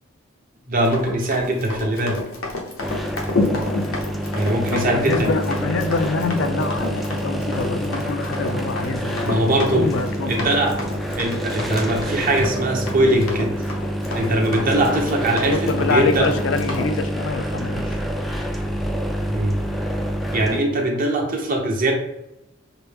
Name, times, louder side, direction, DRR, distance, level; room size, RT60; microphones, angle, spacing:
voice 1, 0.7-2.2 4.3-5.4 9.2-9.9 10.3-10.8 11.2-13.5 14.1-16.3 19.3-19.6 20.3-21.9, right 1 dB, 45° right, 1 dB, 0.9 m, -21 dB
Run, 0.8-16.9, left 2 dB, 90° left, 0.9 m, -30 dB
sound 1, 2.8-20.6, equal, ahead, 0.3 m, -27 dB
voice 2, 4.7-9.4 9.7-10.5 14.6-14.7 15.4-18.0 20.7-20.8, left 4 dB, 65° left, 8 dB, 0.4 m, -25 dB
5.7 x 2.1 x 3.4 m, 0.89 s
head